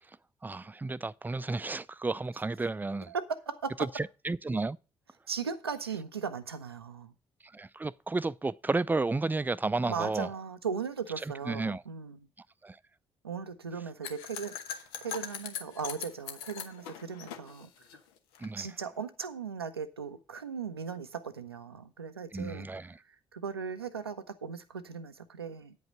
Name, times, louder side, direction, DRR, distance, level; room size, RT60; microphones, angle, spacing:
voice 1, 0.4-3.1 4.0-4.8 7.5-10.3 11.5-11.8 12.6-12.8 18.4-18.7 22.3-22.9, right 3 dB, 15° right, 0.5 m, -32 dB
voice 2, 3.1-3.8 5.3-7.1 9.9-12.2 13.2-17.7 18.6-25.8, right 6 dB, 90° right, 0.5 m, -38 dB
sound 1, 14.0-18.5, left 8 dB, 75° left, 0.9 m, -41 dB
9.4 x 5.3 x 7.4 m
figure-of-eight pair, 40°, 13 cm